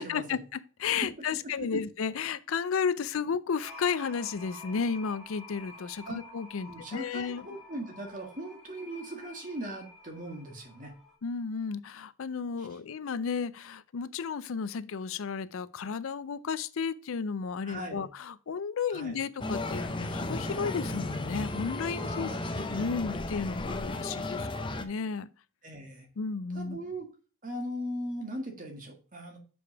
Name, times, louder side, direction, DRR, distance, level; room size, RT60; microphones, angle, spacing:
voice 1, 0.0-7.5 11.2-25.3 26.2-26.8, left 5 dB, 75° left, 0.4 m, -33 dB
sound 1, 3.6-11.2, left 2 dB, ahead, 1.7 m, -50 dB
voice 2, 6.7-10.9 17.6-18.1 18.9-19.2 22.1-22.8 25.6-26.1 26.5-27.1 27.4-29.4, equal, 40° right, 1.8 m, -39 dB
sound 2, 19.4-24.8, left 2 dB, 20° left, 0.6 m, -34 dB
6.8 x 5.3 x 4.6 m
head